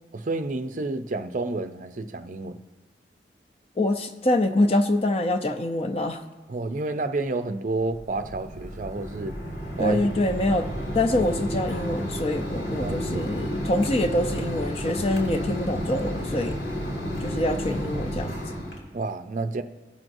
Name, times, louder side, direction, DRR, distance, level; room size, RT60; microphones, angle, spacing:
voice 1, 0.1-2.6 6.5-9.3 9.8-10.6 12.8-13.3 18.9-19.6, right 2 dB, 45° right, 0.5 m, -30 dB
voice 2, 3.8-6.2 9.8-16.6 17.2-18.4, left 1 dB, 35° left, 0.6 m, -25 dB
Mechanisms, 7.8-18.8, equal, 85° left, 2.2 m, -31 dB
17.0 x 6.0 x 2.6 m
head